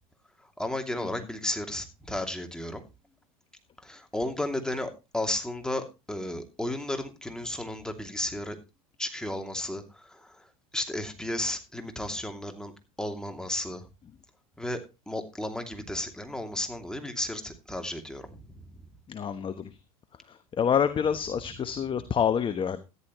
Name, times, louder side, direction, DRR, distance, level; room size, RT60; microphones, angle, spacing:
voice 1, 0.6-2.8 3.8-8.6 9.0-10.5 10.7-12.7 13.0-13.8 14.6-14.8 15.1-18.8, left 1 dB, 5° left, 5 dB, 2.7 m, -33 dB
voice 2, 19.1-19.8 20.3-22.8, left 8 dB, 30° left, 11 dB, 1.1 m, -27 dB
14.0 x 11.0 x 3.1 m, 0.27 s
hypercardioid pair, 90°, 18 cm